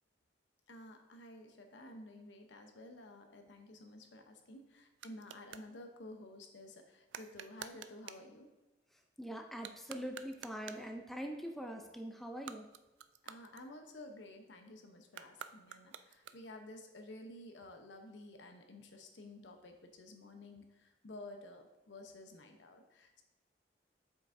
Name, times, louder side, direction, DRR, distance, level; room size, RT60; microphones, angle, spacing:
voice 1, 0.7-8.5 13.2-23.2, left 1 dB, 80° left, 5 dB, 0.8 m, -52 dB
sound 1, 4.0-5.7 7.1-8.3 9.5-11.0 12.3-14.1 15.1-16.7, right 9 dB, 85° right, 0.3 m, -51 dB
voice 2, 9.2-12.6, equal, ahead, 3 dB, 0.5 m, -43 dB
7.7 x 5.9 x 2.6 m, 1.1 s
head